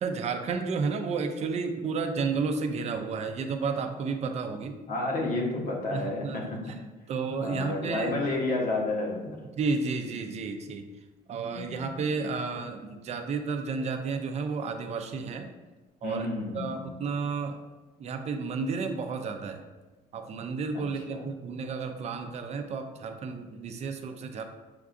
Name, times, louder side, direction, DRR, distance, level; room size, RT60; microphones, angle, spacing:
voice 1, 0.0-4.8 5.9-6.4 7.1-8.1 9.6-10.9 11.3-15.5 16.0-16.3 16.5-17.6 18.0-19.6 20.1-24.4, right 4 dB, 40° right, 5 dB, 0.5 m, -32 dB
voice 2, 4.9-6.7 7.4-9.4 11.5-12.0 16.0-16.9 20.7-21.3, left 2 dB, 55° left, -1 dB, 1.0 m, -31 dB
6.7 x 2.4 x 2.5 m, 1.2 s
cardioid pair, 110°, 17 cm